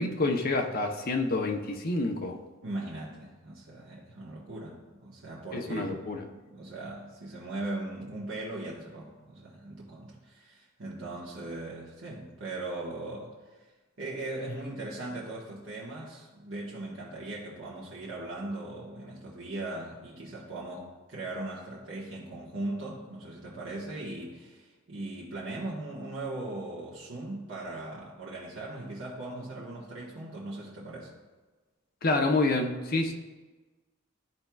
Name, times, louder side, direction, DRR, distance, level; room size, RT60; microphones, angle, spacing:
voice 1, 0.0-2.4 5.5-6.2 32.0-33.1, left 2 dB, 45° left, 3 dB, 0.8 m, -28 dB
voice 2, 2.6-6.0 6.3-13.6 14.0-31.1, right 2 dB, 75° right, -6 dB, 1.3 m, -39 dB
12.0 x 4.4 x 2.3 m, 1.3 s
head